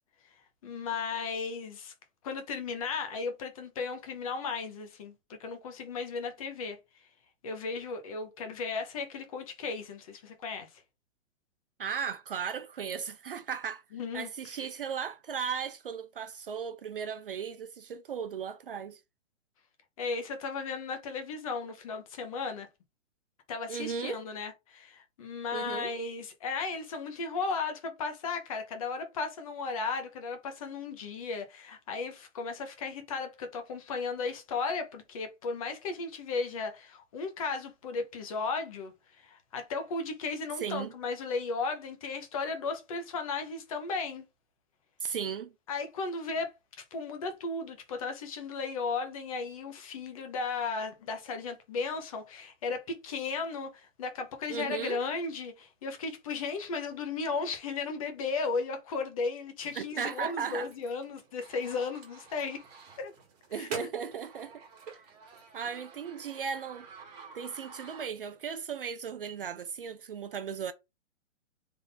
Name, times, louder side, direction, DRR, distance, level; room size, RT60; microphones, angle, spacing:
voice 1, 0.6-1.9 2.2-6.8 7.4-10.8 13.9-14.3 20.0-22.7 23.5-44.2 45.7-46.5 46.9-62.6 63.0-63.1 63.5-63.9, left 4 dB, 30° left, 0.8 m, -35 dB
voice 2, 11.8-13.8 14.1-19.0 23.7-24.2 25.5-25.9 40.6-40.9 45.0-45.5 54.5-55.0 59.7-60.7 63.5-65.0 65.5-66.9 67.3-70.7, right 7 dB, 45° right, 0.4 m, -36 dB
sound 1, 59.6-68.5, right 5 dB, 30° right, 1.6 m, -49 dB
3.7 x 2.6 x 4.1 m
hypercardioid pair, 160°, 39 cm